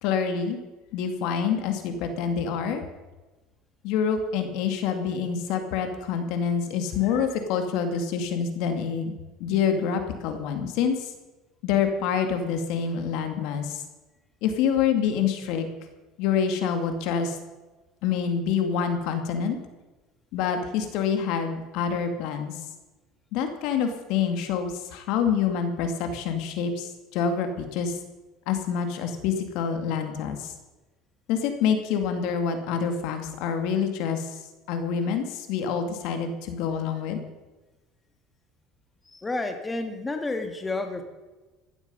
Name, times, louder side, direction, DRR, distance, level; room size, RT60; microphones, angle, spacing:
voice 1, 0.0-0.6 0.9-2.8 3.8-11.1 11.6-13.8 14.4-15.7 16.2-17.4 18.0-19.6 20.3-22.5 23.3-28.0 28.5-30.5 31.3-34.4 34.7-37.2, left 7 dB, 75° left, 6 dB, 2.3 m, -27 dB
voice 2, 39.1-41.0, left 2 dB, 15° left, 6 dB, 1.7 m, -30 dB
16.0 x 12.0 x 5.6 m, 1.2 s
supercardioid pair, 110°, 0 cm